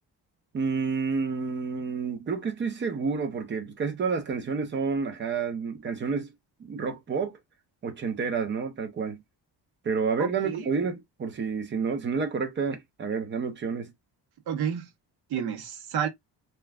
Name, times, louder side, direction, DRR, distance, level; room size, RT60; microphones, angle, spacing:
voice 1, 0.5-6.3 6.6-7.4 7.8-9.2 9.8-13.9, right 5 dB, 25° right, 0.6 m, -29 dB
voice 2, 10.2-10.7 14.5-14.9 15.3-16.1, right 8 dB, 60° right, 0.8 m, -30 dB
3.3 x 2.3 x 2.3 m
cardioid pair, 170°, 42 cm